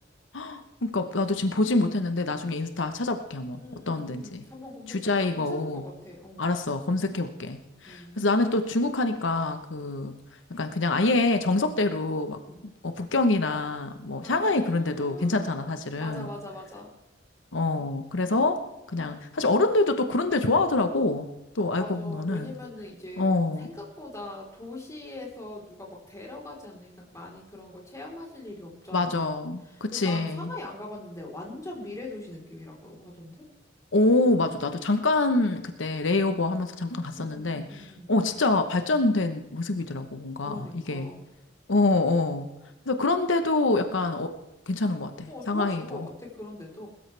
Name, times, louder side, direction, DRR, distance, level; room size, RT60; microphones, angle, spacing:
voice 1, 0.3-4.4 4.9-5.8 6.4-10.1 10.5-12.4 12.8-16.3 17.5-18.6 18.9-21.3 21.5-22.5 23.2-23.7 28.9-30.5 33.9-41.1 41.7-42.5 42.9-44.3 44.7-46.1, left 2 dB, 85° left, 8 dB, 1.0 m, -26 dB
voice 2, 3.6-6.5 7.9-8.2 12.4-12.6 14.2-16.9 21.8-29.3 29.6-33.4 37.1-38.1 40.4-41.2 45.3-46.9, left 2 dB, 15° left, -1 dB, 3.9 m, -42 dB
20.0 x 13.5 x 3.4 m, 0.93 s
head